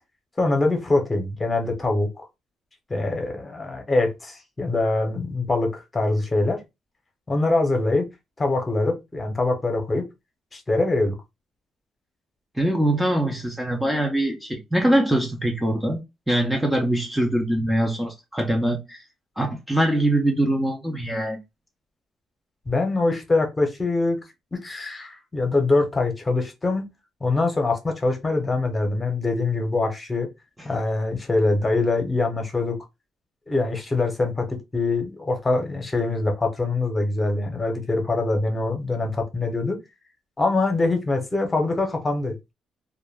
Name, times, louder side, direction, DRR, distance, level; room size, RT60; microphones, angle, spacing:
voice 1, 0.4-2.3 2.9-6.6 7.3-8.1 8.4-10.1 10.5-11.1 22.7-24.2 24.5-26.8 27.2-30.3 30.6-32.8 33.5-39.8 40.4-42.3, left 2 dB, 25° left, 0.9 m, -23 dB
voice 2, 12.6-19.0 19.4-21.4, right 1 dB, 5° right, 0.6 m, -23 dB
2.2 x 2.0 x 3.3 m
cardioid pair, 90°, 0 cm